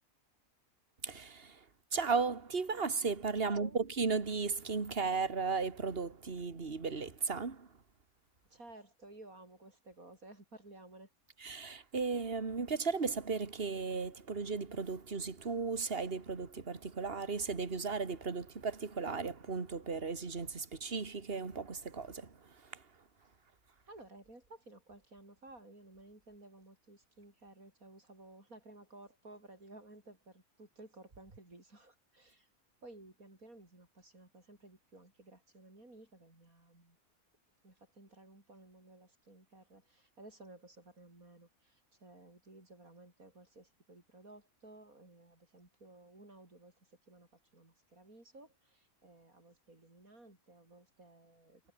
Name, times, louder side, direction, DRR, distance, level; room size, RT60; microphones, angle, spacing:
voice 1, 1.0-1.6 1.9-7.7 11.4-22.3, right 4 dB, 45° right, 2.3 m, -35 dB
voice 2, 3.4-3.8 8.5-11.1 23.9-32.5 32.8-37.0 37.6-51.6, right 2 dB, 90° right, 7.2 m, -56 dB
omnidirectional pair, 1.4 m